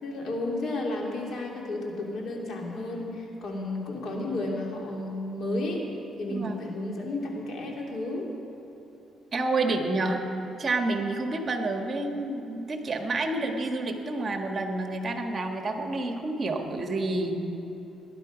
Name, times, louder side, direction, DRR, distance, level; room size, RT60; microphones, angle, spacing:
voice 1, 0.0-5.8 6.2-8.3, left 2 dB, 65° left, -1 dB, 2.6 m, -32 dB
voice 2, 6.3-6.6 9.3-10.2 10.6-17.5, right 2 dB, 40° right, 4 dB, 1.5 m, -29 dB
19.0 x 10.5 x 5.1 m, 3.0 s
cardioid pair, 90°, 0 cm